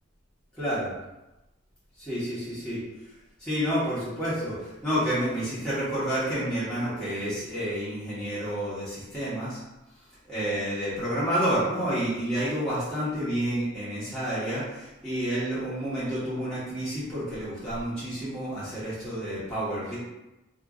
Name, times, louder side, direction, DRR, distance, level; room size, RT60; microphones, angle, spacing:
voice 1, 0.6-0.9 2.0-2.8 3.4-9.6 10.2-20.0, equal, 5° left, -13 dB, 1.2 m, -29 dB
2.6 x 2.6 x 3.6 m, 1.0 s
head